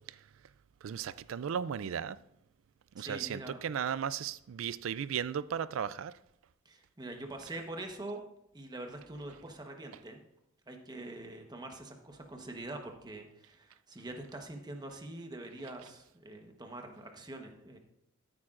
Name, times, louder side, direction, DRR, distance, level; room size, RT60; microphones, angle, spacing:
voice 1, 0.8-2.2 3.0-6.2, right 8 dB, 70° right, 0.4 m, -35 dB
voice 2, 3.0-3.6 6.6-8.2 8.5-10.2 10.7-17.8, right 2 dB, 20° right, 1.1 m, -44 dB
14.0 x 8.7 x 2.5 m
head